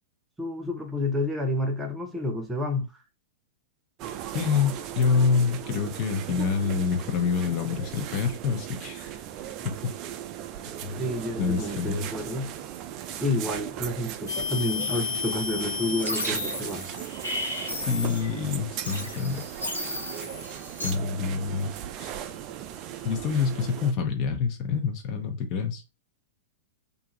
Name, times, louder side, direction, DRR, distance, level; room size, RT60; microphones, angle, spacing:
voice 1, 0.4-2.9 11.0-12.5 13.2-16.9, left 1 dB, 15° right, 0.7 m, -29 dB
sound 1, 4.0-23.9, right 10 dB, 40° right, 0.3 m, -38 dB
voice 2, 4.3-9.2 9.6-9.7 10.8-11.1 11.4-12.1 17.9-19.4 20.8-22.2 23.0-25.8, left 5 dB, 45° left, 0.7 m, -27 dB
sound 2, 14.3-18.4 18.8-20.9, left 3 dB, 85° left, 0.8 m, -32 dB
2.6 x 2.4 x 3.0 m
figure-of-eight pair, 100°, 0 cm